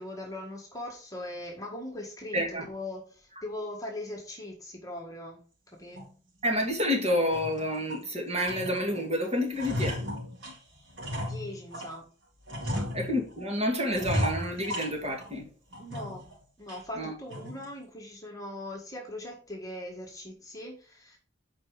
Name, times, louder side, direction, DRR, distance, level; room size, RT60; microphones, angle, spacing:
voice 1, 0.0-5.4 5.8-6.1 11.1-12.0 12.6-12.9 15.8-16.2 16.6-21.2, left 1 dB, 20° left, 1.7 m, -40 dB
voice 2, 2.3-2.7 6.4-10.0 12.9-15.5 17.0-17.1, left 1 dB, 35° right, 2.6 m, -29 dB
sound 1, 5.9-6.1 6.6-6.7 7.1-8.1 8.4-9.1 9.3-12.0 12.5-13.4 13.9-15.4 15.7-16.3 16.7-16.8 17.3-17.7, equal, 85° right, 3.4 m, -35 dB
8.7 x 5.0 x 4.9 m
head